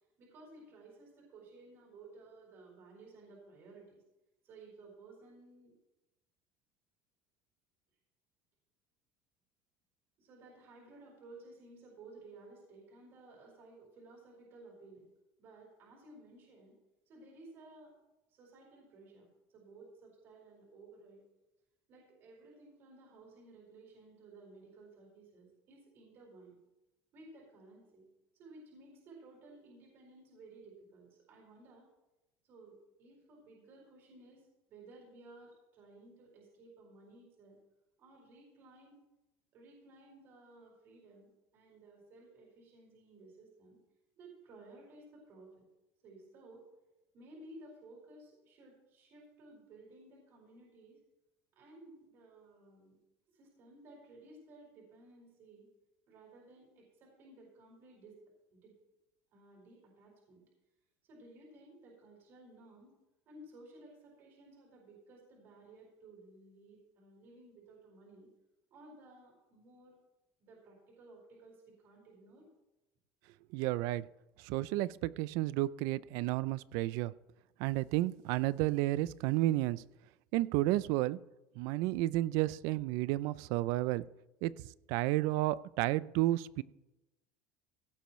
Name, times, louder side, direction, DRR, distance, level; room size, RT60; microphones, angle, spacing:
voice 1, 0.2-4.0 4.4-5.8 10.2-15.1 15.4-16.8 17.1-17.9 18.3-19.3 19.5-21.2 21.9-26.6 27.1-28.1 28.3-31.9 32.4-37.6 38.0-39.0 39.5-43.8 44.2-45.6 46.0-46.7 47.1-51.0 51.5-53.0 53.3-55.7 56.1-58.2 58.5-58.7 59.3-60.4 61.1-63.0 63.3-68.3 68.7-69.9 70.4-72.5, right 2 dB, 40° right, -3 dB, 4.7 m, -56 dB
voice 2, 73.5-74.1 74.4-77.1 77.6-79.8 80.3-81.2 81.6-84.0 84.4-84.5 84.9-86.6, right 17 dB, 65° right, 19 dB, 0.4 m, -31 dB
16.5 x 11.5 x 3.1 m, 0.99 s
cardioid pair, 170°, 6 cm